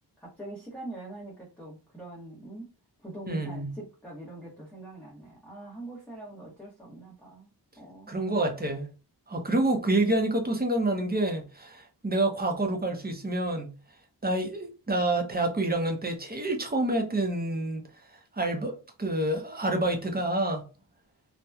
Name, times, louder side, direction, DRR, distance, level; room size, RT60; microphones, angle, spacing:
voice 1, 0.2-2.7 3.0-8.1, right 2 dB, 5° left, 0.9 m, -43 dB
voice 2, 3.3-3.7 8.1-8.9 9.3-13.7 14.2-17.9 18.3-20.6, right 2 dB, 25° right, 0.6 m, -28 dB
2.9 x 2.1 x 2.3 m
wide cardioid pair, 105°, 41 cm